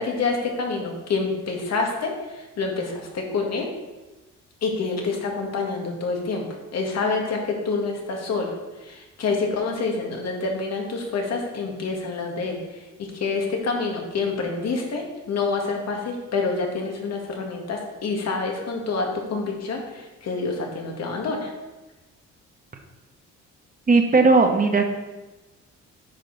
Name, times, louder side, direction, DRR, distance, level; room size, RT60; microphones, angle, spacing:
voice 1, 0.0-3.7 4.6-6.5 6.7-8.5 8.8-21.5, left 4 dB, 60° left, 1 dB, 1.8 m, -27 dB
voice 2, 23.9-24.9, right 3 dB, 30° right, 4 dB, 1.1 m, -17 dB
9.0 x 5.2 x 4.0 m, 1.1 s
cardioid pair, 90°, 30 cm